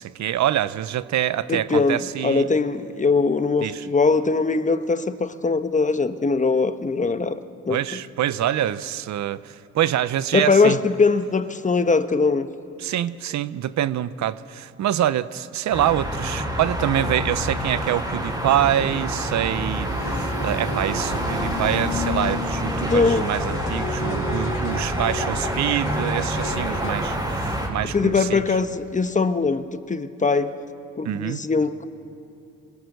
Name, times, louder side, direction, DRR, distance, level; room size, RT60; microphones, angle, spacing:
voice 1, 0.0-2.4 3.6-3.9 7.7-10.8 12.8-28.4 31.0-31.4, right 11 dB, 65° right, 15 dB, 0.8 m, -25 dB
voice 2, 1.5-7.4 7.7-7.8 10.3-12.5 22.9-23.3 27.9-30.5 31.0-31.9, left 4 dB, 25° left, 10 dB, 1.1 m, -21 dB
sound 1, 15.7-27.7, right 1 dB, 10° right, 5.6 m, -27 dB
sound 2, 19.8-26.9, left 4 dB, 80° left, 3.0 m, -33 dB
24.5 x 22.0 x 6.8 m, 2.9 s
cardioid pair, 90°, 30 cm